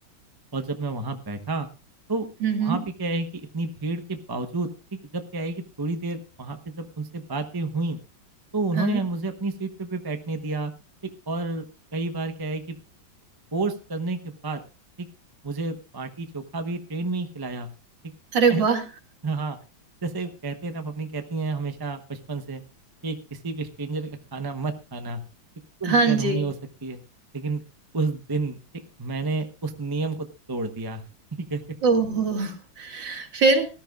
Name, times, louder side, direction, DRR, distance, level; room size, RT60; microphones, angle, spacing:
voice 1, 0.5-1.7 2.1-2.3 2.6-8.0 8.5-10.7 11.3-11.7 11.9-12.8 13.5-14.6 15.0-15.1 15.4-17.7 18.5-18.6 19.2-19.6 20.0-22.6 23.0-25.2 25.8-26.5 26.8-27.0 27.3-27.6 27.9-28.6 29.0-31.0 31.4-31.6, right 3 dB, 25° right, 7 dB, 0.5 m, -30 dB
voice 2, 2.4-2.8 8.7-9.0 18.3-18.8 25.8-26.4 31.8-33.7, right 4 dB, 70° right, 4 dB, 2.7 m, -22 dB
19.5 x 13.5 x 2.4 m, 0.31 s
omnidirectional pair, 2.1 m